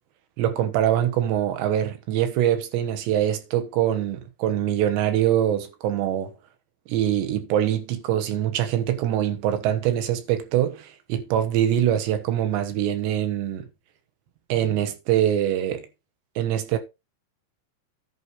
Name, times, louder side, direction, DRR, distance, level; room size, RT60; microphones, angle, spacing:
voice 1, 0.4-6.3 6.9-13.7 14.5-15.9 16.4-16.8, right 11 dB, 75° right, 3.4 m, -24 dB
10.5 x 4.9 x 5.7 m
omnidirectional pair, 5.2 m